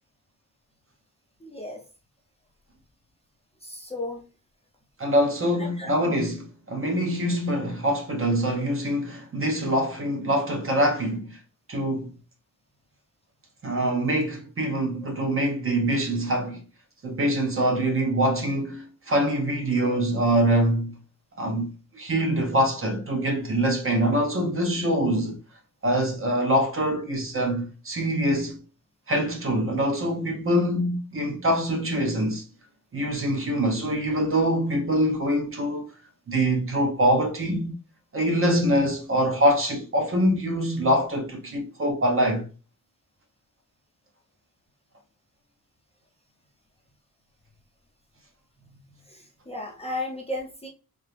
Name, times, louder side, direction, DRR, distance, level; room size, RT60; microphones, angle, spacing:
voice 1, 1.4-1.8 3.6-4.2 5.6-6.0 49.1-50.7, left 1 dB, 15° left, 0.6 m, -34 dB
voice 2, 5.0-11.4 11.7-12.1 13.6-16.6 17.0-21.0 21.4-25.4 25.8-28.6 29.1-32.4 32.9-35.9 36.3-37.7 38.1-42.5, right 1 dB, 40° right, 1.0 m, -24 dB
3.6 x 2.8 x 3.3 m
wide cardioid pair, 170°, 35 cm